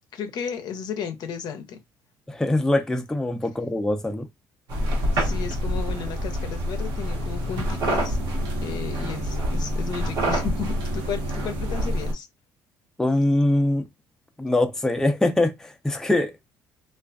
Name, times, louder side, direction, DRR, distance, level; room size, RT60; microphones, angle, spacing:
voice 1, 0.1-1.8 5.1-8.2 8.6-12.3, left 7 dB, 65° left, 0.6 m, -34 dB
voice 2, 2.3-4.3 13.0-13.9 14.4-16.3, left 1 dB, 5° left, 0.5 m, -23 dB
sound 1, 4.7-12.1, equal, 70° right, 1.0 m, -26 dB
2.4 x 2.3 x 2.2 m
supercardioid pair, 75°, 8 cm